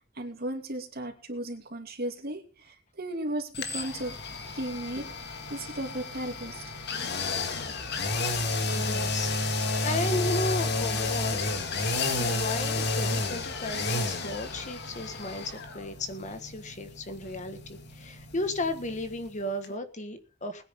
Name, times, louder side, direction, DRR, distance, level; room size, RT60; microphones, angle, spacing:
voice 1, 0.0-4.1 4.5-5.1 5.5-6.7, right 1 dB, 50° right, 4 dB, 2.8 m, -35 dB
sound 1, 3.5-19.4 19.6-19.7, left 3 dB, 60° left, 2.2 m, -31 dB
voice 2, 8.7-11.4 12.2-20.7, left 2 dB, 40° left, 8 dB, 1.7 m, -34 dB
21.0 x 9.9 x 3.8 m, 0.35 s
head